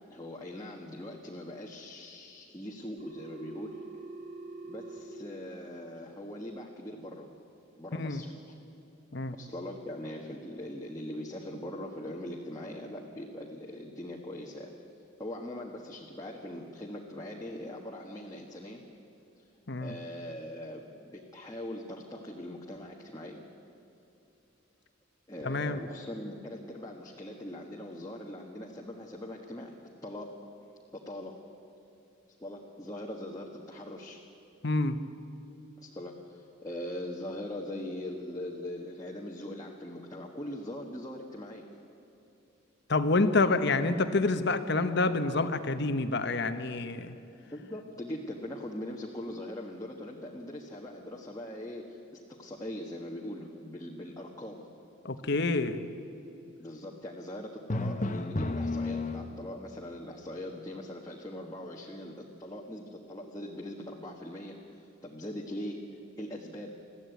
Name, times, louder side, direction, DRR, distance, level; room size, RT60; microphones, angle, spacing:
voice 1, 0.1-3.8 4.7-7.3 7.8-8.6 9.3-14.7 15.2-18.8 19.8-23.4 25.3-29.8 30.0-30.3 30.9-31.3 32.4-34.2 35.8-41.6 47.5-54.6 56.6-65.8 66.2-66.7, left 1 dB, 20° left, -2 dB, 1.6 m, -41 dB
Telephone, 3.0-5.0, right 3 dB, 35° right, 3.6 m, -44 dB
voice 2, 25.4-25.8 34.6-35.0 42.9-47.1 55.0-55.8, left 3 dB, 60° left, 10 dB, 1.2 m, -27 dB
Drum, 57.7-59.7, left 2 dB, 40° left, 0.9 m, -32 dB
21.5 x 15.0 x 9.4 m, 2.9 s
head